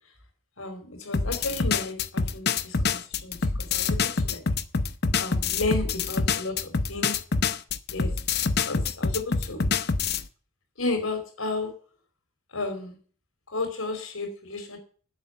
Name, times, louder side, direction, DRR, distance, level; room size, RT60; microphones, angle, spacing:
voice 1, 0.6-4.4 5.2-7.2 7.9-8.1 8.6-9.7 10.8-11.7 12.5-13.0 13.5-14.8, left 2 dB, 90° left, 5 dB, 4.7 m, -33 dB
sound 1, 1.1-10.2, left 4 dB, 50° left, 0.8 m, -26 dB
12.0 x 8.0 x 6.9 m, 0.42 s
head